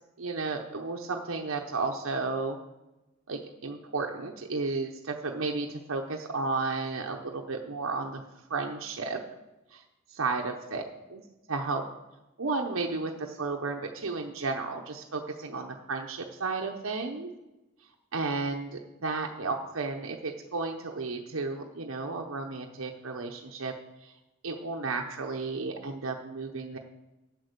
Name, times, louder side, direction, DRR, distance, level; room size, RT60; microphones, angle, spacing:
voice 1, 0.2-2.6 3.3-8.2 8.5-9.2 9.7-9.8 10.1-10.8 11.1-11.8 12.4-17.3 18.1-23.7 24.0-24.1 24.4-26.8, right 3 dB, 80° right, 2 dB, 0.9 m, -33 dB
8.3 x 8.2 x 6.7 m, 1.0 s
head